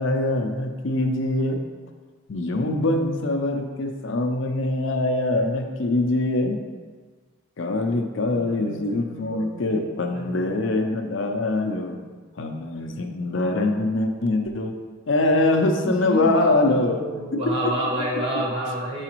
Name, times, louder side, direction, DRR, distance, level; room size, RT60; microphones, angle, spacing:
voice 1, 0.0-1.7 2.3-6.6 7.6-12.1 12.4-14.8 15.1-17.0 17.3-17.6, left 2 dB, 60° left, 4 dB, 0.5 m, -23 dB
voice 2, 8.3-9.9 10.1-10.6 15.8-19.0, right 1 dB, 25° right, -3 dB, 1.1 m, -30 dB
6.8 x 4.8 x 3.0 m, 1.4 s
head